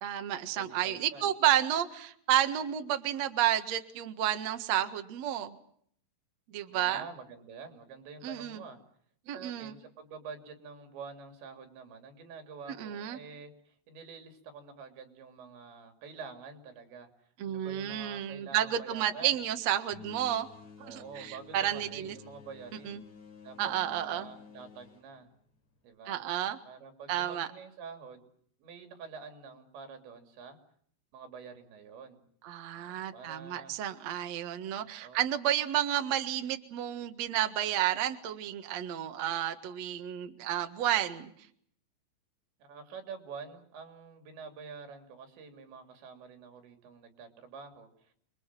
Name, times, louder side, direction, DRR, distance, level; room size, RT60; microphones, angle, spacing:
voice 1, 0.0-5.6 6.5-7.0 8.2-8.6 9.3-9.7 12.7-13.2 17.4-20.5 20.8-22.2 22.8-23.0 23.6-24.3 26.1-26.6 27.1-27.5 32.4-41.3, right 11 dB, 55° right, 7 dB, 2.1 m, -31 dB
voice 2, 0.6-1.3 6.7-8.8 9.3-17.1 17.4-19.4 20.8-23.0 23.4-25.3 25.8-26.2 26.6-28.3 28.6-30.6 31.1-32.2 32.8-33.8 34.8-35.3 42.6-48.1, right 5 dB, 85° right, 6 dB, 5.3 m, -47 dB
sound 1, 19.9-25.9, left 6 dB, 40° left, 4.4 m, -53 dB
28.5 x 22.0 x 7.5 m, 0.65 s
omnidirectional pair, 5.0 m